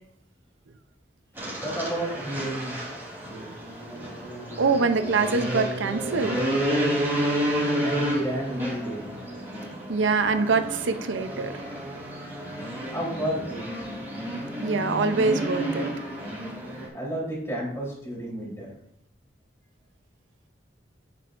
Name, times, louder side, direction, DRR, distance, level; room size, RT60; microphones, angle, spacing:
sound 1, 1.4-16.9, equal, 10° right, 3.2 m, -30 dB
voice 1, 1.6-2.8 3.2-3.5 7.8-9.2 12.8-13.9 16.9-18.7, right 1 dB, 15° left, -4 dB, 3.4 m, -31 dB
voice 2, 4.6-6.4 9.9-11.6 14.6-15.9, right 4 dB, 80° right, 9 dB, 0.6 m, -24 dB
9.7 x 9.3 x 2.5 m, 0.73 s
head